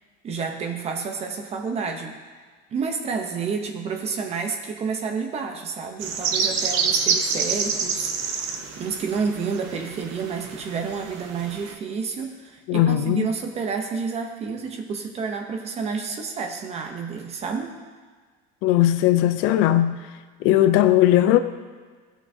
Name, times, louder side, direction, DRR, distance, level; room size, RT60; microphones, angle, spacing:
voice 1, 0.2-2.1 2.7-17.7, right 5 dB, 30° right, 4 dB, 0.8 m, -30 dB
sound 1, 6.0-11.7, right 6 dB, 90° right, 0.8 m, -27 dB
voice 2, 12.7-13.3 18.6-19.9 20.4-21.4, left 13 dB, 75° left, 10 dB, 0.5 m, -18 dB
16.0 x 6.0 x 2.7 m, 1.5 s
cardioid pair, 165°, 21 cm